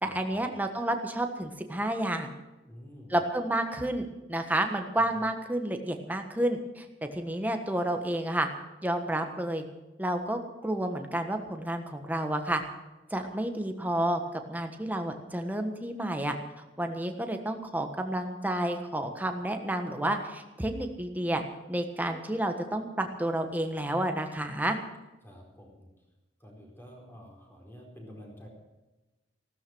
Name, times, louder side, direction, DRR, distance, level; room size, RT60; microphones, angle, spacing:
voice 1, 0.0-2.3 3.1-8.5 8.8-9.6 10.0-12.6 13.1-14.2 14.5-16.3 16.8-21.4 21.7-24.8, right 1 dB, 10° right, 5 dB, 1.4 m, -30 dB
voice 2, 2.6-3.2 5.2-5.3 25.2-25.9 26.4-28.5, equal, 10° left, 0 dB, 4.4 m, -49 dB
16.0 x 13.5 x 6.2 m, 1.1 s
head